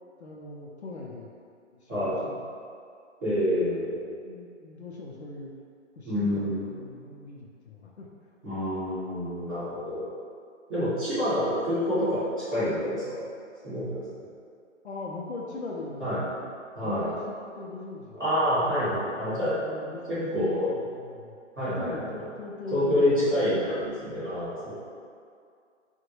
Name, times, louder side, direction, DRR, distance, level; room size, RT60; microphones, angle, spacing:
voice 1, 0.2-1.3 1.7-2.4 4.2-5.5 6.0-8.1 14.8-16.4 16.8-18.2 18.5-19.1 19.5-21.4 21.8-23.2, left 3 dB, 60° left, -3 dB, 0.5 m, -40 dB
voice 2, 1.9-2.2 3.2-3.9 6.0-6.6 8.4-10.0 10.7-12.2 12.5-13.3 13.6-14.0 16.0-16.2 16.7-17.1 18.2-19.5 20.1-20.7 21.5-22.1 22.7-24.7, equal, 20° right, -18 dB, 1.5 m, -27 dB
3.7 x 2.2 x 3.0 m, 2.3 s
hypercardioid pair, 180°, 37 cm